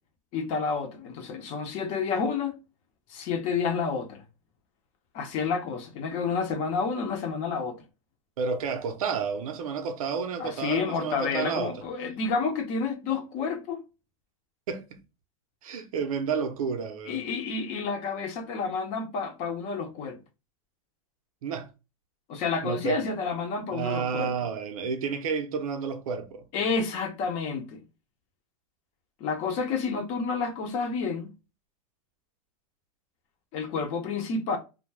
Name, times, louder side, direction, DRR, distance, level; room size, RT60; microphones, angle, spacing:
voice 1, 0.3-2.6 3.1-4.2 5.1-7.8 10.4-13.8 17.0-20.2 22.3-24.5 26.5-27.8 29.2-31.3 33.5-34.6, left 5 dB, 40° left, 0.7 m, -30 dB
voice 2, 8.4-11.8 14.7-15.0 15.6-17.2 21.4-21.7 22.6-23.0 23.7-26.5, right 6 dB, 85° right, 0.6 m, -31 dB
2.3 x 2.1 x 3.0 m
supercardioid pair, 145°, 18 cm